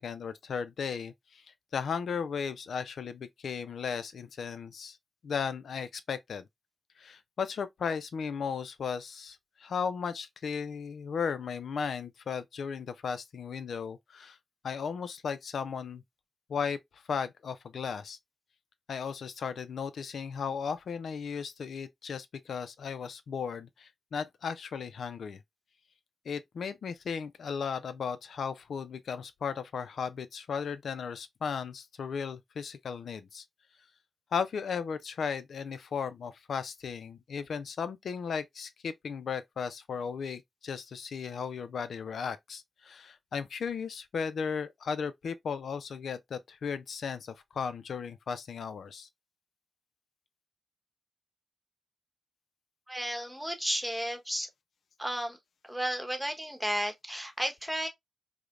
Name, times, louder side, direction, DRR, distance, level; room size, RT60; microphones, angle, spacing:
voice 1, 0.0-1.4 1.7-5.0 5.2-6.4 7.0-14.4 14.6-16.0 16.5-18.2 18.9-25.4 26.3-33.4 34.3-49.1, left 6 dB, 80° left, 0.3 m, -36 dB
voice 2, 52.9-54.5 55.0-55.4 55.7-57.9, equal, 5° right, 1.0 m, -33 dB
4.8 x 2.1 x 2.3 m
cardioid pair, 55°, 0 cm